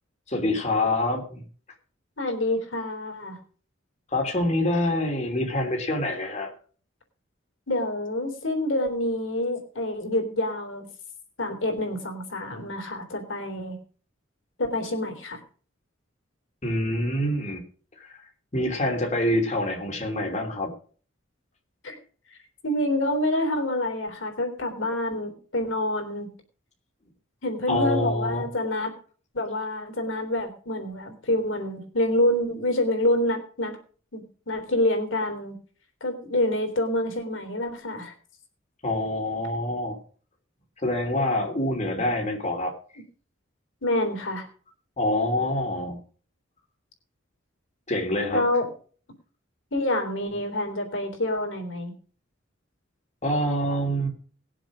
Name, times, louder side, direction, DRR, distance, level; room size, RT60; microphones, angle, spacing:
voice 1, 0.3-1.4 4.1-6.5 16.6-17.6 18.0-18.2 18.5-20.7 27.7-28.5 38.8-40.0 40.8-42.7 45.0-46.0 47.9-48.4 53.2-54.1, left 1 dB, 35° left, 2 dB, 3.1 m, -26 dB
voice 2, 2.2-3.4 7.7-10.9 11.4-13.8 14.6-15.4 21.8-21.9 22.6-26.3 27.4-28.9 29.3-33.8 34.1-35.6 36.0-38.1 43.8-44.5 48.3-48.7 49.7-51.9, left 1 dB, 70° left, 6 dB, 3.5 m, -27 dB
19.0 x 7.5 x 6.3 m, 0.43 s
head